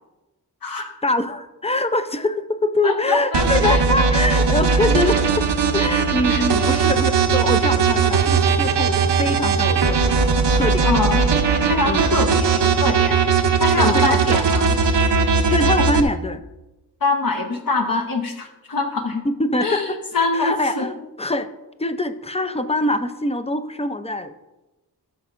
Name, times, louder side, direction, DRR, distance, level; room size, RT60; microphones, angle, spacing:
voice 1, 1.0-10.2 10.5-10.9 11.8-12.1 13.7-14.4 15.5-16.4 19.2-21.5 21.8-24.3, left 2 dB, 15° left, 10 dB, 0.4 m, -24 dB
voice 2, 2.8-3.8 6.3-6.4 10.8-11.2 11.7-13.2 13.6-14.8 17.0-19.3 19.6-20.8, left 3 dB, 55° left, 3 dB, 0.9 m, -24 dB
sound 1, 3.3-16.0, right 5 dB, 85° right, 0.7 m, -18 dB
14.0 x 6.6 x 2.4 m, 1.0 s
wide cardioid pair, 110°, 40 cm